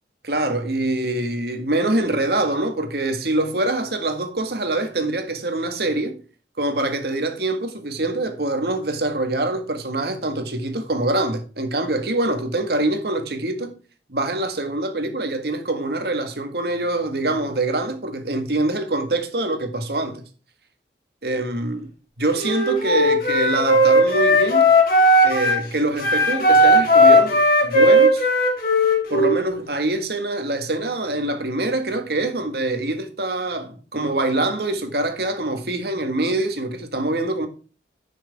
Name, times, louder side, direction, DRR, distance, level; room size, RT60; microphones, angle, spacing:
voice 1, 0.2-6.2 6.6-13.7 14.1-20.2 21.2-21.9 22.2-24.7 25.2-28.3 29.1-37.5, right 2 dB, 65° right, 1.8 m, -24 dB
Wind instrument woodwind instrument, 22.3-25.6 26.0-29.4, equal, 50° left, 3.2 m, -16 dB
11.0 x 6.2 x 3.6 m
head